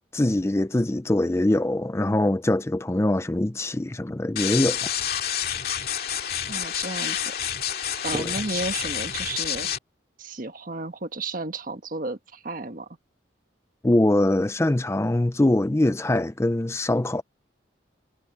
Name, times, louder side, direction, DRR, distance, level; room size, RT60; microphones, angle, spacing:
voice 1, 0.1-4.9 8.1-8.3 13.8-17.2, left 1 dB, 15° left, 0.4 m, -23 dB
sound 1, 4.4-9.8, left 9 dB, 55° left, 2.2 m, -28 dB
voice 2, 6.5-7.3 8.0-9.7 10.2-12.9, right 2 dB, 45° right, 1.5 m, -33 dB
head